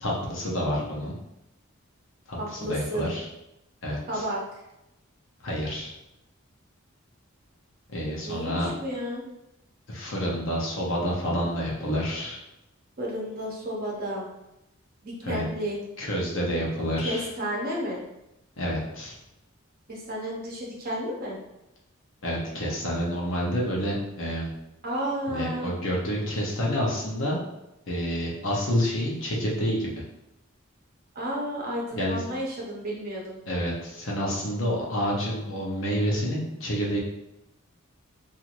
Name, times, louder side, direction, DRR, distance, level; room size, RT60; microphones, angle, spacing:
voice 1, 0.0-1.2 2.3-3.2 3.8-4.2 5.4-5.9 7.9-8.7 9.9-12.4 15.2-15.4 16.0-17.3 18.6-19.2 22.2-24.5 25.3-27.4 27.9-30.0 31.9-32.2 33.5-37.0, equal, 65° left, -3 dB, 0.8 m, -28 dB
voice 2, 2.4-3.1 4.1-4.4 8.2-9.2 13.0-14.3 15.0-15.8 17.0-18.0 19.9-21.4 24.8-25.7 31.1-33.4, equal, 45° right, -3 dB, 0.8 m, -32 dB
3.0 x 2.6 x 2.5 m, 0.89 s
head